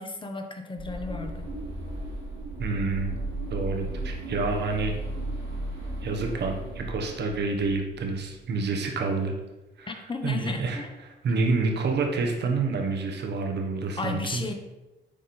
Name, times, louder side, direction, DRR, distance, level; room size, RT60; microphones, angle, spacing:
voice 1, 0.0-1.5 9.9-10.9 14.0-14.5, left 3 dB, 25° left, 4 dB, 1.1 m, -34 dB
sound 1, 0.8-8.2, right 1 dB, 90° right, 2.1 m, -35 dB
voice 2, 2.6-3.2 3.5-4.9 6.0-9.3 9.8-14.5, right 3 dB, 60° right, 3 dB, 1.3 m, -28 dB
9.9 x 3.7 x 4.3 m, 1.1 s
cardioid pair, 90°, 20 cm